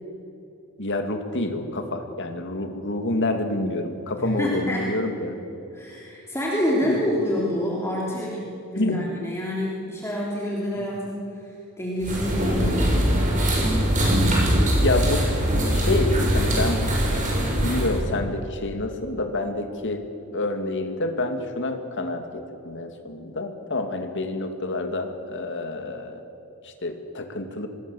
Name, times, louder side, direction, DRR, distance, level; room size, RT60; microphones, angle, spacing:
voice 1, 0.8-5.4 6.8-7.0 8.8-9.0 10.8-10.9 14.8-15.3 15.7-16.9 17.5-20.0 20.3-26.2 26.6-27.7, left 2 dB, 60° left, 6 dB, 2.4 m, -28 dB
voice 2, 4.2-4.9 5.7-13.0, left 1 dB, 10° left, -4 dB, 3.3 m, -27 dB
sound 1, 12.0-18.0, equal, 35° right, 6.9 m, -22 dB
26.5 x 20.0 x 7.2 m, 2.9 s
head